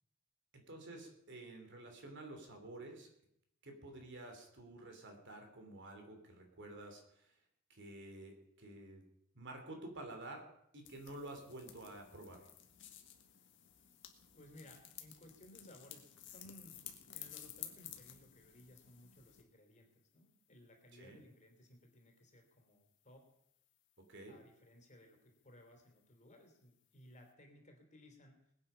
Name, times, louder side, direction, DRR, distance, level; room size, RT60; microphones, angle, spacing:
voice 1, 0.5-3.1 3.6-7.3 7.7-9.0 9.3-10.4 10.7-12.4 21.0-21.2 24.1-24.4, right 2 dB, 55° right, 4 dB, 3.1 m, -50 dB
sound 1, 10.8-19.4, left 11 dB, 60° left, 1.7 m, -54 dB
voice 2, 14.3-16.9 17.1-23.3 24.3-28.5, left 1 dB, 35° left, 3 dB, 3.1 m, -60 dB
20.5 x 9.0 x 5.7 m, 0.76 s
head